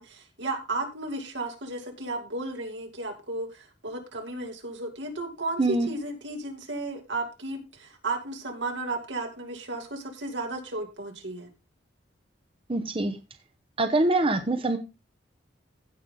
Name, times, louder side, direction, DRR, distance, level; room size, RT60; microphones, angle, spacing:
voice 1, 0.0-11.5, right 2 dB, 80° right, 3 dB, 2.7 m, -34 dB
voice 2, 12.7-13.2 13.8-14.8, right 2 dB, 30° right, 7 dB, 0.9 m, -24 dB
16.0 x 5.6 x 3.8 m, 0.27 s
head